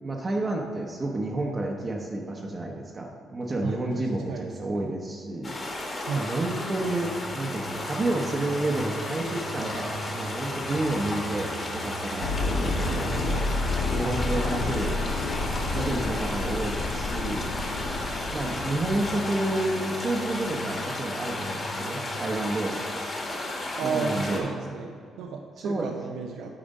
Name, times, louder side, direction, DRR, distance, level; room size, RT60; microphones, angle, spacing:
voice 1, 0.0-5.6 6.2-13.5 13.9-15.0 15.7-17.5 18.3-23.0 23.4-24.7 25.6-26.0, right 2 dB, 25° right, -1 dB, 0.7 m, -30 dB
voice 2, 3.6-4.9 6.1-6.3 23.8-26.5, right 5 dB, 90° right, 2 dB, 0.5 m, -33 dB
sound 1, 5.4-24.4, left 1 dB, 25° left, 1.5 m, -33 dB
sound 2, 6.4-22.4, right 1 dB, 55° right, 1.3 m, -42 dB
sound 3, 12.2-19.0, left 3 dB, 85° left, 1.0 m, -30 dB
8.8 x 5.0 x 5.3 m, 2.4 s
cardioid pair, 135°, 0 cm